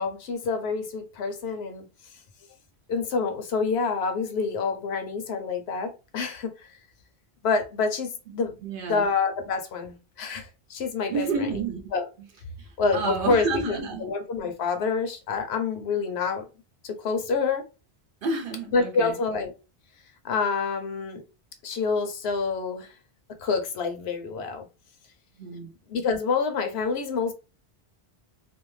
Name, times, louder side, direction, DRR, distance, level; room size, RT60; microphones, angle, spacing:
voice 1, 0.0-1.9 2.9-6.7 7.4-8.6 8.9-11.5 11.9-12.0 12.8-16.4 16.8-17.6 18.7-19.5 20.2-21.2 21.6-22.9 23.4-24.7 25.9-27.3, left 4 dB, 80° left, 0.8 m, -27 dB
voice 2, 8.6-9.1 11.1-11.8 12.6-14.1 18.2-19.2 25.4-25.7, right 4 dB, 60° right, 0.8 m, -30 dB
2.6 x 2.1 x 3.1 m
omnidirectional pair, 1.1 m